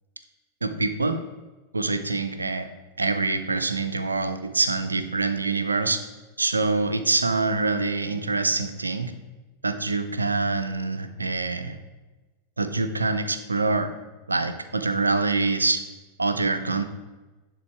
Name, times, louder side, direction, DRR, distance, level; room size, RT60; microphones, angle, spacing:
voice 1, 0.6-1.2 1.7-2.7 3.0-6.0 6.4-9.1 9.6-11.8 12.6-13.9 14.3-15.8 16.2-16.8, right 3 dB, 80° right, 10 dB, 0.5 m, -25 dB
9.4 x 3.8 x 4.6 m, 1.2 s
figure-of-eight pair, 90°, 0 cm